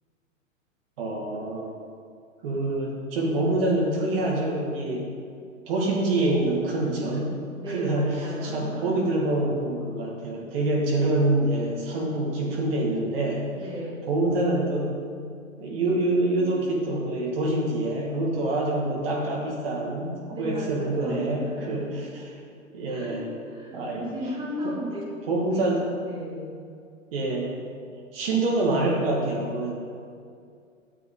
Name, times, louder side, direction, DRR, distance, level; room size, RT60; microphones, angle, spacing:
voice 1, 1.0-1.7 2.4-5.1 5.7-7.3 7.7-8.1 8.4-13.4 14.1-15.0 15.6-21.9 22.1-22.2 22.7-23.2 23.7-24.0 24.6-24.7 25.3-25.8 27.1-27.5 28.1-29.7, right 2 dB, 45° right, -2 dB, 2.3 m, -26 dB
voice 2, 7.5-9.4 13.5-14.1 20.3-22.0 22.6-25.1 25.5-25.6 26.0-26.5, equal, 10° right, -4 dB, 2.6 m, -36 dB
13.5 x 10.5 x 3.9 m, 2.3 s
figure-of-eight pair, 110°, 39 cm